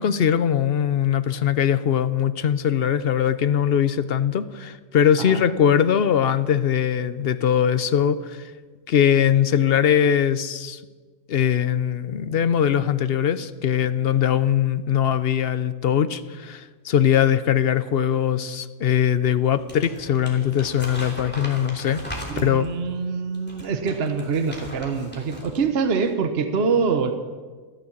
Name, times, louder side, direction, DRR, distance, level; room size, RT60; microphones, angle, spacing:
voice 1, 0.0-8.5 8.9-10.8 11.3-22.0 22.4-22.7, left 9 dB, 55° left, 13 dB, 0.8 m, -21 dB
Crumpling crinkling, 19.5-22.7 23.3-25.6 25.9-26.1, equal, 5° left, 3.1 m, -38 dB
voice 2, 22.3-27.1, right 5 dB, 50° right, 7 dB, 1.2 m, -24 dB
14.0 x 13.5 x 7.2 m, 1.4 s
omnidirectional pair, 1.4 m